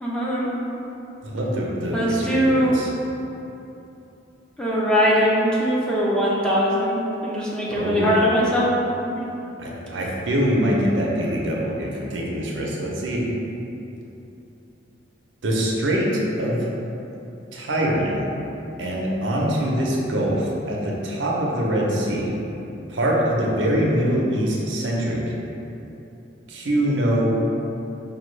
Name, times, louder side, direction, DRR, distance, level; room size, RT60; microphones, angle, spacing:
voice 1, 0.0-0.5 1.9-2.7 4.6-8.7 9.0-9.3, equal, 5° left, -7 dB, 0.5 m, -21 dB
voice 2, 1.2-2.9 7.7-8.1 9.6-13.2 15.4-16.7 17.5-18.2 18.8-22.3 22.9-25.2 26.5-27.3, equal, 75° right, -3 dB, 0.6 m, -23 dB
5.2 x 2.3 x 3.2 m, 2.9 s
head